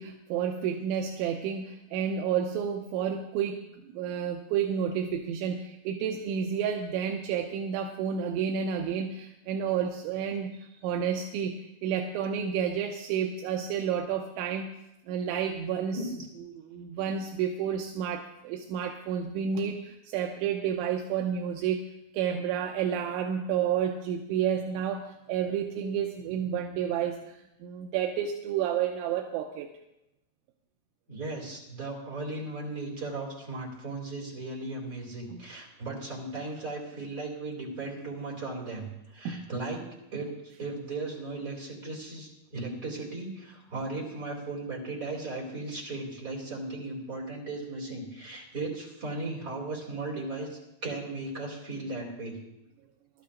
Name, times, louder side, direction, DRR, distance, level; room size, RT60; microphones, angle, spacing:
voice 1, 0.0-3.6 3.9-14.7 15.1-16.0 16.5-21.8 22.1-29.7 35.3-35.4 39.3-39.5, right 8 dB, 80° right, 3 dB, 2.8 m, -30 dB
voice 2, 31.1-39.8 40.1-40.3 40.6-52.4, right 2 dB, 35° right, -3 dB, 1.4 m, -36 dB
23.0 x 12.5 x 2.5 m, 0.88 s
omnidirectional pair, 5.9 m